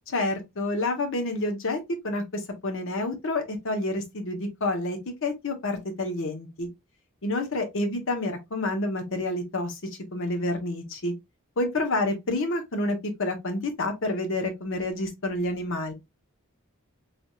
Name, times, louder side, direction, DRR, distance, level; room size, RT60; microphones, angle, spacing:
voice 1, 0.1-6.7 7.2-9.8 10.1-11.1 11.6-15.9, left 2 dB, 60° left, 0.9 m, -29 dB
3.3 x 2.8 x 2.3 m
head